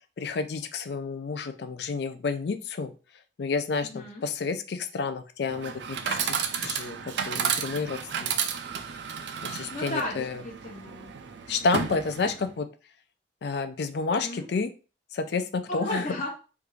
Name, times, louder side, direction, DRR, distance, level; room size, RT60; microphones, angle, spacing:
voice 1, 0.2-2.9 3.4-6.4 6.6-8.3 9.4-10.4 11.5-12.7 13.4-14.7 15.1-16.0, left 4 dB, 60° left, 9 dB, 0.4 m, -30 dB
voice 2, 3.8-4.2 9.7-11.1 14.1-14.5 15.7-16.3, left 1 dB, 40° left, -3 dB, 0.8 m, -34 dB
Chatter / Coin (dropping), 5.5-12.5, right 7 dB, 70° right, 0.4 m, -32 dB
3.4 x 2.4 x 3.1 m, 0.34 s
head